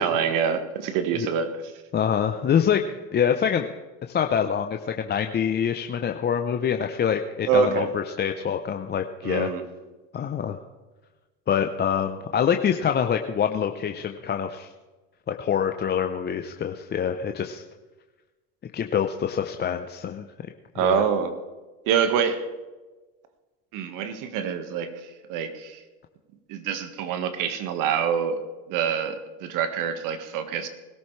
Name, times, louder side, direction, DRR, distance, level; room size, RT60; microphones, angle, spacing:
voice 1, 0.0-1.6 7.5-7.9 9.2-9.6 20.7-21.3 21.9-22.4 23.7-24.9 25.3-25.8 26.5-28.4 28.7-30.7, right 7 dB, 60° right, 9 dB, 1.7 m, -25 dB
voice 2, 1.9-2.8 3.1-3.7 4.1-9.5 10.1-10.6 11.5-14.7 15.3-17.6 18.7-20.2 20.8-21.0, left 8 dB, 30° left, 6 dB, 0.8 m, -25 dB
20.5 x 13.5 x 3.3 m, 1.2 s
supercardioid pair, 95°, 36 cm